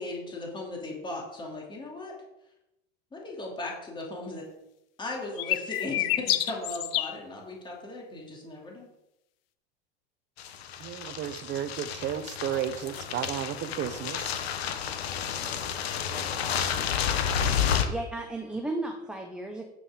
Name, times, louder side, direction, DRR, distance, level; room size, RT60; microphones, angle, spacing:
voice 1, 0.0-2.1 3.1-4.5 5.0-8.9, left 2 dB, 15° left, -1 dB, 2.7 m, -37 dB
sound 1, 5.4-7.2, left 15 dB, 70° left, 0.9 m, -27 dB
sound 2, 10.4-17.9, left 8 dB, 90° left, 1.2 m, -31 dB
voice 2, 10.8-14.3, right 10 dB, 35° right, 13 dB, 0.8 m, -33 dB
voice 3, 17.7-19.6, right 2 dB, 5° right, 2 dB, 1.1 m, -34 dB
9.1 x 6.2 x 5.1 m, 0.89 s
supercardioid pair, 110°, 30 cm